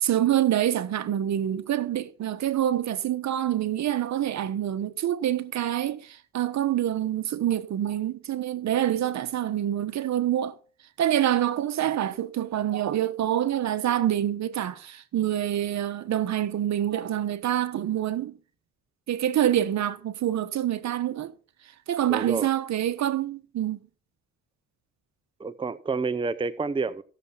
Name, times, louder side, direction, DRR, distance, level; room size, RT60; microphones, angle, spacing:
voice 1, 0.0-10.5 11.0-18.3 19.1-21.3 21.9-23.8, right 11 dB, 65° right, 1.1 m, -26 dB
voice 2, 22.1-22.5 25.4-27.0, right 4 dB, 15° right, 0.7 m, -29 dB
15.0 x 7.0 x 5.7 m
cardioid pair, 90°, 30 cm